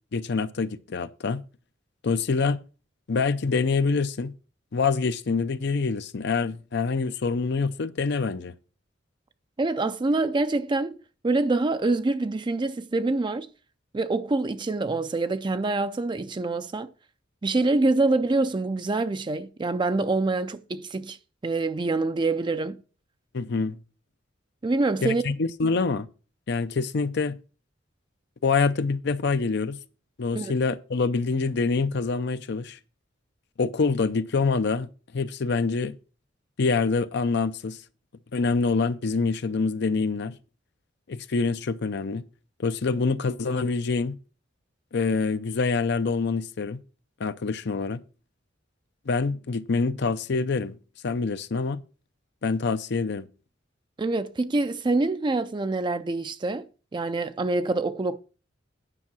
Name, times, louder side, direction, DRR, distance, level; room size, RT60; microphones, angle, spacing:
voice 1, 0.1-1.4 2.0-2.6 3.1-4.3 4.7-8.5 23.3-23.8 25.0-26.1 26.5-27.4 28.4-29.8 30.2-32.8 33.6-36.0 36.6-37.8 38.3-40.4 41.1-42.2 42.6-44.2 44.9-46.8 47.2-48.0 49.1-50.8 51.0-51.8 52.4-53.3, left 4 dB, 60° left, 0.5 m, -26 dB
voice 2, 9.6-11.0 11.2-13.5 13.9-16.9 17.4-21.2 21.4-22.8 24.6-25.2 30.4-30.5 54.0-56.7 56.9-58.2, right 2 dB, 25° right, 0.4 m, -25 dB
9.9 x 5.6 x 6.0 m
head